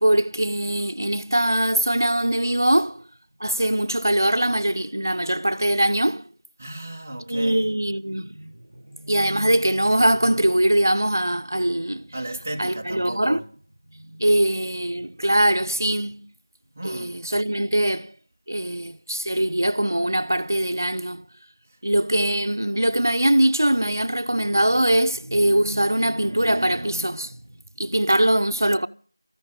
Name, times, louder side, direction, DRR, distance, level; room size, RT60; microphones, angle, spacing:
voice 1, 0.0-3.0 3.4-6.3 7.3-8.5 8.9-12.1 12.6-13.4 14.0-16.2 16.8-18.1 18.5-21.2 21.8-27.4 27.8-28.9, right 1 dB, 50° right, 0.7 m, -22 dB
voice 2, 6.6-7.7 12.1-13.5 16.8-17.2 21.7-21.8, right 1 dB, 10° right, 0.6 m, -35 dB
14.0 x 10.5 x 7.5 m
figure-of-eight pair, 175°, 2 cm